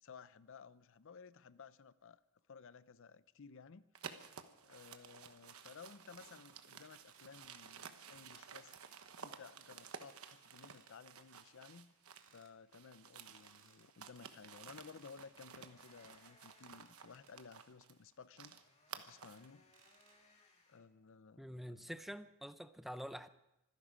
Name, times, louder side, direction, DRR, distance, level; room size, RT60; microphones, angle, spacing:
voice 1, 0.0-2.2 2.5-3.9 4.6-8.7 9.2-11.9 12.3-18.6 18.9-19.7 20.7-21.9, left 5 dB, 60° left, 16 dB, 0.6 m, -57 dB
sound 1, 3.9-12.4 12.7-19.5, right 6 dB, 85° right, 1.1 m, -54 dB
sound 2, 5.5-6.2 7.1-7.6 8.3-9.1 9.9-11.0 11.3-11.5 12.1-12.5 13.2-13.9 14.9-15.5 16.6-17.6 18.5-18.6 19.7-20.2, right 6 dB, 60° right, 2.4 m, -69 dB
sound 3, 11.7-20.8, left 3 dB, 30° left, 2.3 m, -72 dB
voice 2, 21.4-23.3, equal, ahead, 11 dB, 0.5 m, -47 dB
25.0 x 11.0 x 5.0 m, 0.91 s
head